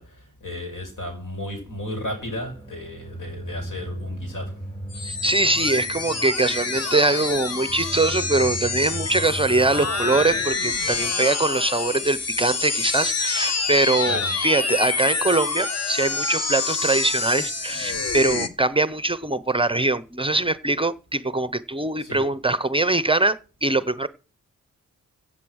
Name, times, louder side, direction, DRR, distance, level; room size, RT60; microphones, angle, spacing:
voice 1, 0.0-4.7 14.0-14.3 22.0-22.3, left 1 dB, 85° left, 3 dB, 6.4 m, -34 dB
sound 1, 1.9-10.5, right 1 dB, 20° left, 6.0 m, -37 dB
sound 2, 4.9-18.5, left 4 dB, 50° left, 1.4 m, -27 dB
voice 2, 5.0-24.1, right 2 dB, 15° right, 15 dB, 0.5 m, -22 dB
16.5 x 7.6 x 6.2 m, 0.37 s
wide cardioid pair, 165°, 31 cm